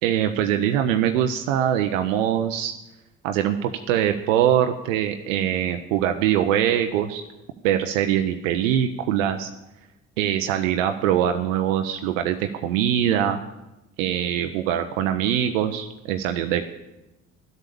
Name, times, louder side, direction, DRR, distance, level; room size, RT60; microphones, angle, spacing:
voice 1, 0.0-2.7 3.2-7.2 7.6-9.5 10.2-13.4 14.0-16.7, right 10 dB, 70° right, 7 dB, 0.8 m, -23 dB
12.0 x 8.1 x 6.9 m, 0.98 s
figure-of-eight pair, 50°, 40 cm